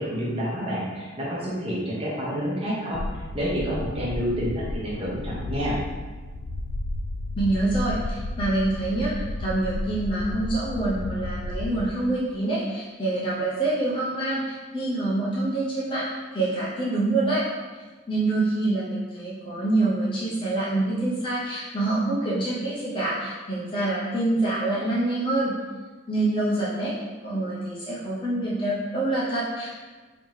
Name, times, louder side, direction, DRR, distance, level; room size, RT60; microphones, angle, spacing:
voice 1, 0.0-3.0 3.3-5.8, equal, 30° right, -6 dB, 1.0 m, -28 dB
sound 1, 2.9-11.9, left 2 dB, 80° left, 0.3 m, -33 dB
voice 2, 7.4-17.5 17.7-25.5 26.1-29.7, right 2 dB, 25° left, -7 dB, 0.6 m, -26 dB
3.5 x 2.9 x 3.2 m, 1.3 s
head